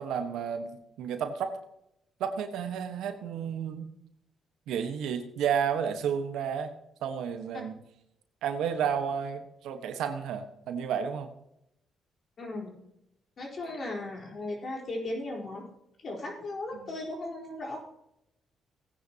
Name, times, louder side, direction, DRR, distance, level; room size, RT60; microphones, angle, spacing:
voice 1, 0.0-1.6 2.2-3.9 4.7-6.7 7.0-7.7 8.4-11.3, right 7 dB, 85° right, 7 dB, 1.3 m, -31 dB
voice 2, 12.4-12.8 13.4-15.6 16.0-17.8, left 2 dB, 45° left, -1 dB, 4.3 m, -36 dB
17.0 x 9.7 x 2.9 m, 0.80 s
cardioid pair, 90°, 0 cm